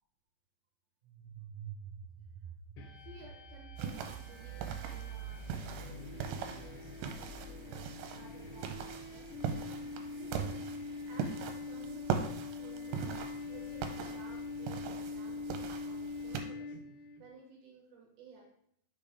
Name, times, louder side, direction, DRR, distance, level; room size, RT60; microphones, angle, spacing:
sound 1, 1.0-9.7, right 6 dB, 50° right, 0.8 m, -48 dB
sound 2, 2.8-17.2, left 4 dB, 75° left, 1.9 m, -44 dB
voice 1, 3.0-9.6 10.2-10.6 11.1-18.5, right 5 dB, 70° right, 0 dB, 2.2 m, -56 dB
sound 3, 3.8-16.4, right 7 dB, 85° right, 2.5 m, -41 dB
6.3 x 5.3 x 3.4 m, 0.71 s
omnidirectional pair, 4.4 m